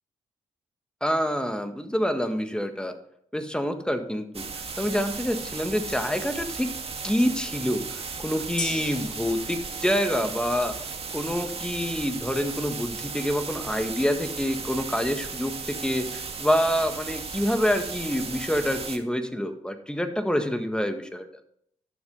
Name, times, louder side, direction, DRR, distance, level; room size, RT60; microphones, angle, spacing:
voice 1, 1.0-2.9 3.3-4.4 4.8-6.7 7.0-21.3, equal, 5° left, 7 dB, 1.7 m, -27 dB
sound 1, 4.3-19.0, right 5 dB, 50° right, 1.7 m, -36 dB
Gong, 8.6-16.3 16.7-16.8, left 2 dB, 35° left, 4.7 m, -44 dB
11.5 x 7.1 x 4.0 m, 0.70 s
supercardioid pair, 50°, 13 cm